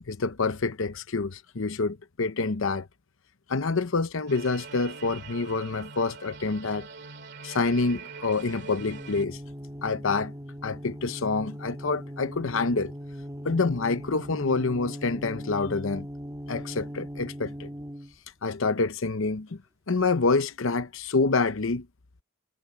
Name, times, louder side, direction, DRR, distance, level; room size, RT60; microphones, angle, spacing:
voice 1, 0.0-2.9 3.5-6.9 7.4-9.4 9.8-10.3 10.6-12.9 13.4-16.1 16.5-17.7 18.4-19.6 19.9-21.9, left 3 dB, 65° left, 0.8 m, -27 dB
sound 1, 4.3-9.2, right 5 dB, 55° right, 2.3 m, -43 dB
sound 2, 8.8-18.2, equal, 15° right, 1.9 m, -39 dB
head